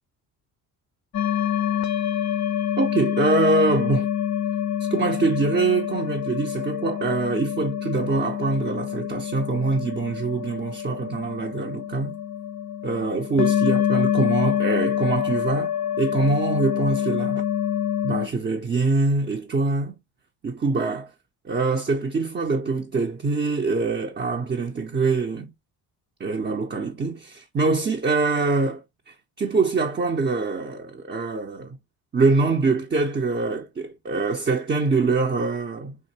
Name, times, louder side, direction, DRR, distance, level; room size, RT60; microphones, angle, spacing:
sound 1, 1.1-18.3, left 10 dB, 40° left, 0.4 m, -26 dB
voice 1, 2.8-4.1 4.9-12.2 12.8-17.4 18.0-20.0 20.4-21.1 21.4-25.5 26.2-31.8 32.1-36.0, right 3 dB, 20° right, 0.6 m, -24 dB
3.3 x 2.5 x 2.8 m
hypercardioid pair, 65°, 49 cm